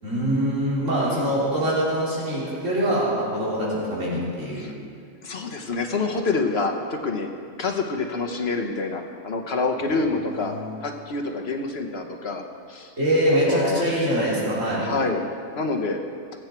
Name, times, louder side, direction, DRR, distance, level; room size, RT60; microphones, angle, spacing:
voice 1, 0.0-4.7 10.2-10.6 13.0-14.9, equal, 65° right, -8 dB, 3.9 m, -24 dB
voice 2, 1.0-1.3 4.6-4.7 5.2-7.3 7.6-10.5 10.8-12.4 12.7-12.9 13.5-13.8 14.8-15.2 15.6-16.0, left 3 dB, 50° left, 3 dB, 1.2 m, -27 dB
22.0 x 8.0 x 4.5 m, 2.3 s
omnidirectional pair, 1.4 m